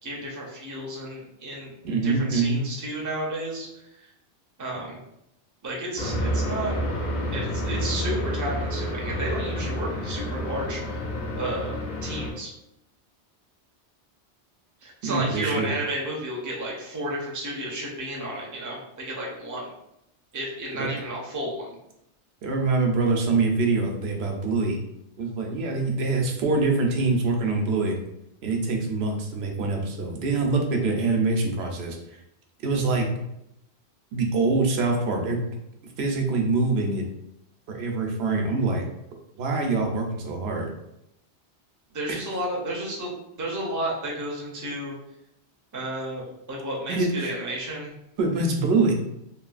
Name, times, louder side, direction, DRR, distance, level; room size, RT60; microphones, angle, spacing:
voice 1, 0.0-1.7 2.0-3.7 4.0-4.1 4.6-5.0 5.6-6.8 7.3-11.0 11.4-12.5 14.8-19.7 20.3-21.7 41.9-44.9 45.7-47.9, right 1 dB, 20° right, -3 dB, 0.5 m, -32 dB
voice 2, 1.8-2.6 15.0-15.7 20.8-20.9 22.4-24.8 25.2-28.0 28.4-32.2 32.6-33.1 34.1-35.5 36.0-37.0 37.7-38.8 39.4-40.7 42.1-42.2 46.9-47.3 48.2-48.9, right 3 dB, 70° right, 2 dB, 0.8 m, -24 dB
sound 1, 6.0-12.3, equal, 50° left, 0.6 m, -29 dB
3.1 x 2.3 x 2.4 m, 0.82 s
omnidirectional pair, 1.1 m